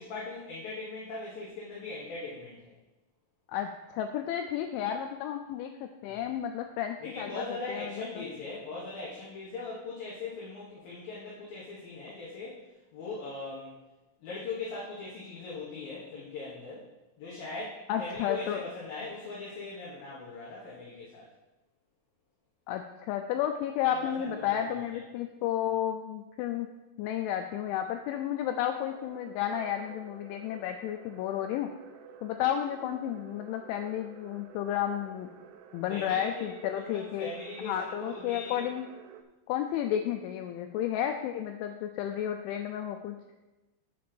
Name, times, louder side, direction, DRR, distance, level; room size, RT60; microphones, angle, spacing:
voice 1, 0.0-2.7 6.0-6.2 7.0-12.6 12.9-13.7 14.2-16.8 17.2-21.3 23.9-24.8 35.9-38.7, left 3 dB, 65° left, -7 dB, 2.4 m, -40 dB
voice 2, 3.5-8.2 17.9-18.7 22.7-26.7 27.0-31.7 32.2-35.3 35.7-37.3 37.6-38.9 39.5-43.2, left 10 dB, 90° left, 5 dB, 2.7 m, -32 dB
sound 1, 28.9-39.2, right 6 dB, 85° right, 2.8 m, -52 dB
7.8 x 5.1 x 6.7 m, 1.0 s
omnidirectional pair, 6.0 m